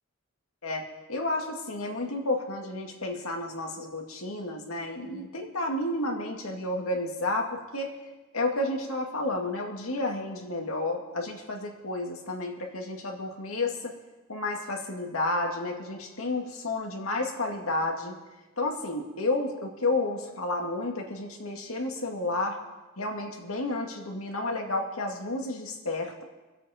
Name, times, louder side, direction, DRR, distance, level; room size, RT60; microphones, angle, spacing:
voice 1, 0.6-7.9 8.3-13.9 14.3-18.2 18.6-22.6 23.0-26.2, left 2 dB, 85° left, 1 dB, 2.1 m, -31 dB
24.0 x 8.2 x 4.3 m, 1.2 s
head